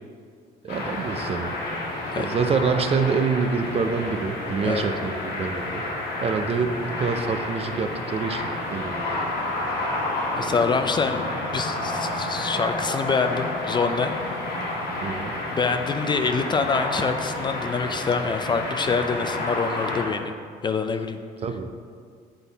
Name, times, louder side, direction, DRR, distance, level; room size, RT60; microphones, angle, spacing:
voice 1, 0.6-1.6 2.1-5.8 6.2-8.4 8.7-9.3 15.0-15.4 21.4-21.7, right 5 dB, 35° right, 8 dB, 0.4 m, -26 dB
sound 1, 0.7-20.1, left 2 dB, 75° left, 1.5 m, -30 dB
voice 2, 10.4-11.2 11.5-14.2 15.5-20.3 20.6-21.2, left 5 dB, 25° left, 8 dB, 0.3 m, -25 dB
8.1 x 3.8 x 4.0 m, 2.1 s
cardioid pair, 110°, 17 cm